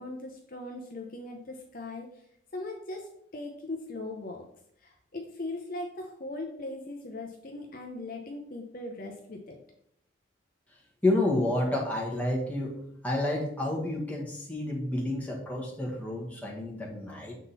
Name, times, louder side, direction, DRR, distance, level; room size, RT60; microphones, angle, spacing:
voice 1, 0.0-2.1 2.5-4.4 4.8-9.6, left 2 dB, 45° left, 2 dB, 0.7 m, -39 dB
voice 2, 11.0-12.7 13.0-17.4, left 1 dB, 5° left, -3 dB, 1.3 m, -29 dB
7.3 x 3.7 x 4.1 m, 0.71 s
head